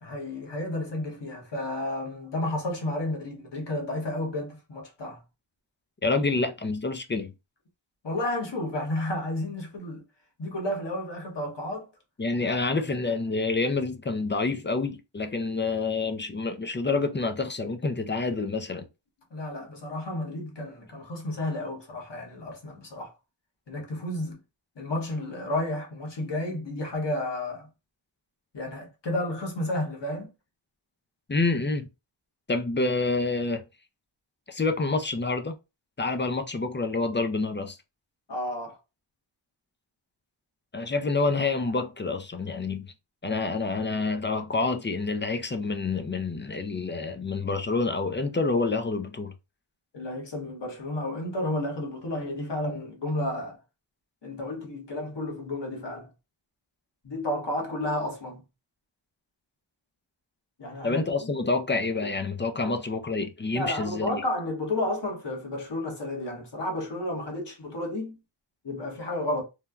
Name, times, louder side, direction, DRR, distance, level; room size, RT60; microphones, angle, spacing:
voice 1, 0.0-5.2 8.0-10.0 10.4-11.9 19.3-23.1 23.7-24.4 24.8-27.7 28.5-30.3 38.3-38.8 49.9-53.6 54.2-56.1 57.0-58.4 60.6-61.3 62.6-62.8 63.5-68.2 68.6-69.4, left 1 dB, 60° left, 1.2 m, -32 dB
voice 2, 6.0-7.3 12.2-18.9 31.3-31.9 32.5-33.6 34.5-35.5 36.0-37.8 40.7-42.9 43.2-49.3 60.8-64.2, left 3 dB, 25° left, 0.4 m, -28 dB
3.1 x 2.2 x 2.3 m
cardioid pair, 45°, 48 cm